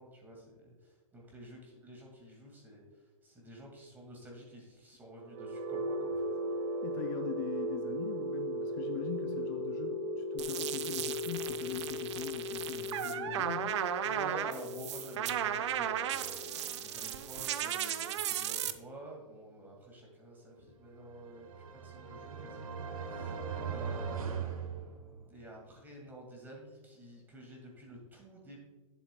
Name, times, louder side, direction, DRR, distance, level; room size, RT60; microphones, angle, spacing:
voice 1, 0.0-2.8 3.2-6.3 14.0-28.6, right 1 dB, 10° right, -1 dB, 2.1 m, -50 dB
sound 1, 5.2-19.1, equal, 30° right, 1.1 m, -38 dB
voice 2, 6.8-13.8, left 12 dB, 30° left, 6 dB, 0.5 m, -42 dB
sound 2, 10.4-18.7, right 10 dB, 55° right, 0.6 m, -36 dB
sound 3, 21.1-25.5, right 6 dB, 80° right, 1.1 m, -40 dB
11.0 x 7.2 x 2.3 m, 1.3 s
hypercardioid pair, 140°, 18 cm